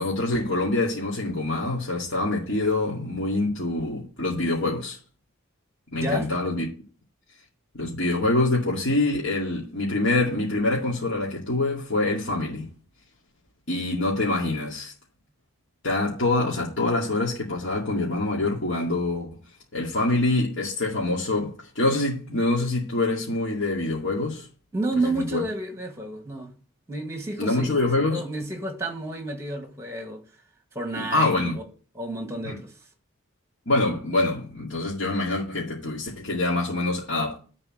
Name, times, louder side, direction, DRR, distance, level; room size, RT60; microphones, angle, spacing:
voice 1, 0.0-5.0 5.9-6.6 7.8-12.7 13.7-14.9 15.8-19.3 19.7-24.5 25.0-25.4 27.4-28.2 31.0-31.5 32.4-32.6 33.7-37.4, left 2 dB, 60° left, 2.3 m, -25 dB
voice 2, 6.0-6.4 24.7-26.5 26.9-30.2 30.7-31.6 31.9-32.7, right 2 dB, 15° right, 1.7 m, -30 dB
11.0 x 4.2 x 7.8 m
head